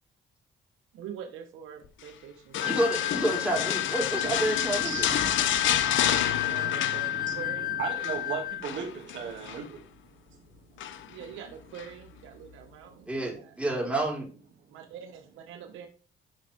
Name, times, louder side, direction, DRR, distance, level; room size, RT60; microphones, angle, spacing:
voice 1, 0.9-3.1 6.5-7.8 11.0-13.5 14.7-15.9, right 8 dB, 90° right, 1.4 m, -45 dB
sound 1, 2.5-7.5 7.8-8.2 8.6-9.6 10.8-11.2 11.7-11.9, left 10 dB, 75° left, 0.9 m, -30 dB
sound 2, 2.6-8.7, left 15 dB, 45° left, 0.6 m, -31 dB
voice 2, 2.6-5.1 13.1-14.3, right 2 dB, 5° right, 5.0 m, -29 dB
voice 3, 4.2-11.2 12.8-13.1 14.6-14.8, right 6 dB, 70° right, 2.7 m, -39 dB
10.5 x 6.3 x 3.6 m
cardioid pair, 90°, 20 cm